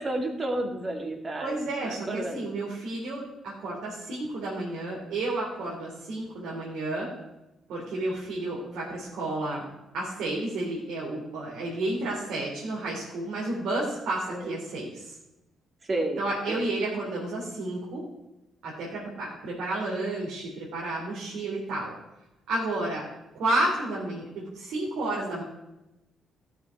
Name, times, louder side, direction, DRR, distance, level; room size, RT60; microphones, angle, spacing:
voice 1, 0.0-1.6 1.8-2.4 14.3-14.6 15.9-16.2 16.5-16.6, right 2 dB, 35° right, 3 dB, 2.3 m, -31 dB
voice 2, 1.4-7.1 7.7-9.6 9.9-15.1 16.2-18.0 18.6-21.9 22.5-23.0 23.3-25.4, right 2 dB, 80° right, -5 dB, 3.3 m, -31 dB
15.0 x 6.9 x 4.6 m, 0.96 s
cardioid pair, 90°, 0 cm